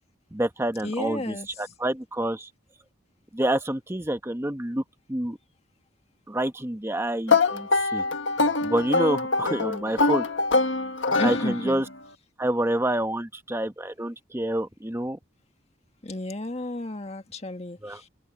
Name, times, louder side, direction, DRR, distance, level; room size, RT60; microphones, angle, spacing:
voice 1, 0.3-2.5 3.3-4.8 5.1-5.4 6.3-8.0 8.6-10.2 11.2-11.9 12.4-15.2 17.8-18.0, right 1 dB, 15° right, 1.0 m, -28 dB
voice 2, 0.8-1.5 11.2-11.8 16.0-18.1, left 1 dB, 35° left, 1.8 m, -32 dB
sound 1, 7.3-11.9, left 3 dB, 85° left, 1.5 m, -24 dB
head